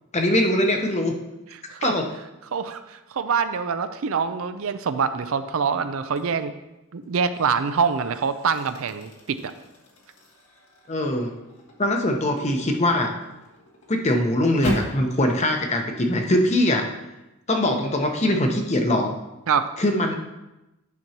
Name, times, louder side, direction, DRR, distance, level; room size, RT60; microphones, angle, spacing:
voice 1, 0.1-1.1 1.8-2.1 10.9-11.3 11.8-13.1 13.9-16.9 17.5-19.2 19.8-20.1, left 1 dB, 30° left, 3 dB, 0.8 m, -22 dB
voice 2, 2.5-6.5 6.9-9.5 19.5-19.7, right 6 dB, 65° right, 11 dB, 0.4 m, -25 dB
sound 1, 6.1-6.5 7.0-15.1, left 2 dB, 80° left, 1.6 m, -37 dB
10.5 x 6.0 x 2.9 m, 0.96 s
head